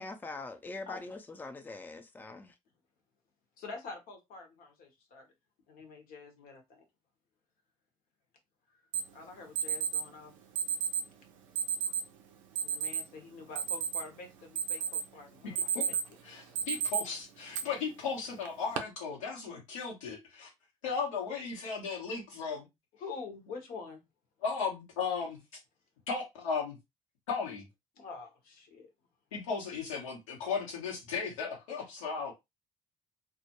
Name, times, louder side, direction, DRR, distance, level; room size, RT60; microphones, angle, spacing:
voice 1, 0.0-2.5, left 3 dB, 10° left, 0.5 m, -43 dB
voice 2, 0.8-1.2 3.6-5.3 5.7-6.8 9.1-10.3 12.6-15.6 23.0-24.0 28.0-28.9, left 4 dB, 65° left, 0.9 m, -46 dB
Alarm, 8.9-9.0 9.6-10.0 10.6-11.0 11.6-12.0 12.6-13.0 13.4-14.2 14.6-15.1 15.4-16.1 16.6-17.0 17.5-17.6 18.4-18.8, right 8 dB, 85° right, 0.4 m, -31 dB
voice 3, 15.4-15.8 16.2-20.5 20.8-22.7 24.4-25.4 26.1-26.8 27.3-27.7 29.3-32.3, left 5 dB, 85° left, 1.0 m, -36 dB
2.3 x 2.1 x 2.9 m
hypercardioid pair, 50°, 16 cm